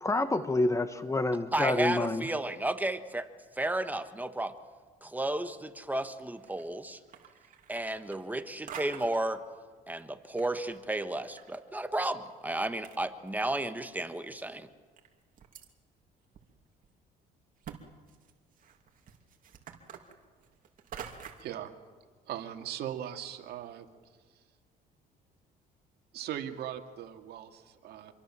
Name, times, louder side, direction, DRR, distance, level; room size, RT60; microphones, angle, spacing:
voice 1, 0.0-2.2, left 2 dB, 15° left, 11 dB, 1.3 m, -28 dB
voice 2, 1.5-3.3 3.6-4.5 5.0-7.0 7.7-9.4 9.9-14.7, right 1 dB, 10° right, 9 dB, 1.4 m, -33 dB
sound 1, 6.3-6.7 7.0-8.4 8.7-9.3 10.0-11.6 11.8-11.9 12.6-12.7 12.8-13.7 14.2-14.3 15.0-15.7 16.3-16.4 16.8-16.9 17.6-17.8 18.1-21.5, right 8 dB, 55° right, 2.8 m, -47 dB
voice 3, 21.4-21.7 22.3-23.9 26.1-28.1, right 10 dB, 70° right, 5 dB, 2.2 m, -39 dB
26.5 x 22.5 x 7.5 m, 1.5 s
cardioid pair, 110°, 17 cm